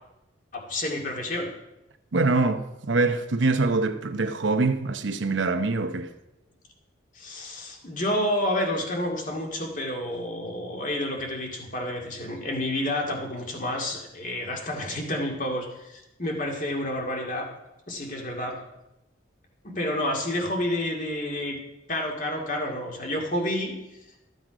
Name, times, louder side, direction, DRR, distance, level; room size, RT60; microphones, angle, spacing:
voice 1, 0.5-1.5 7.2-17.5 17.9-18.6 19.6-21.6 21.9-23.7, left 1 dB, 40° left, 2.1 m, -29 dB
voice 2, 2.1-6.1, right 3 dB, 75° right, 0.9 m, -24 dB
14.0 x 7.8 x 5.1 m
head